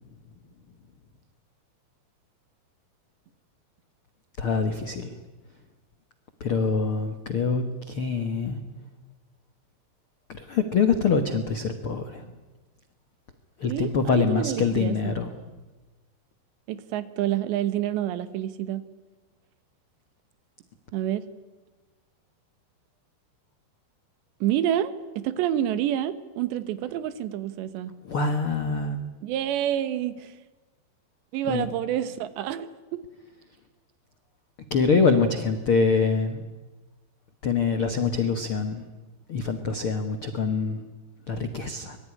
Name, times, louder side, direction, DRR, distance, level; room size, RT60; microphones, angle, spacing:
voice 1, 4.4-5.1 6.4-8.6 10.3-12.3 13.6-15.3 28.0-29.0 31.5-31.7 34.7-36.4 37.4-38.8 39.3-40.8 41.3-42.0, left 5 dB, 75° left, 7 dB, 1.2 m, -25 dB
voice 2, 13.7-15.0 16.7-18.9 20.9-21.2 24.4-27.9 29.2-30.4 31.3-33.0, right 11 dB, 85° right, 13 dB, 3.5 m, -28 dB
25.0 x 22.5 x 9.9 m, 1.2 s
omnidirectional pair, 4.9 m